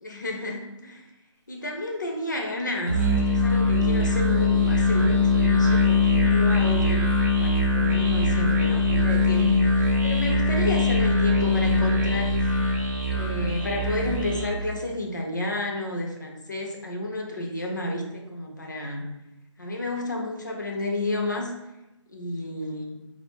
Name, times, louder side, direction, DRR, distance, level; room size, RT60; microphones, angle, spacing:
voice 1, 0.0-1.1 1.5-7.1 7.4-9.6 10.0-12.4 13.1-19.1 19.6-21.5 22.1-23.0, left 1 dB, 40° left, 1 dB, 0.3 m, -31 dB
Musical instrument, 2.9-14.6, left 2 dB, 35° right, 0.4 m, -22 dB
2.3 x 2.0 x 3.1 m, 1.0 s
hypercardioid pair, 175°, 16 cm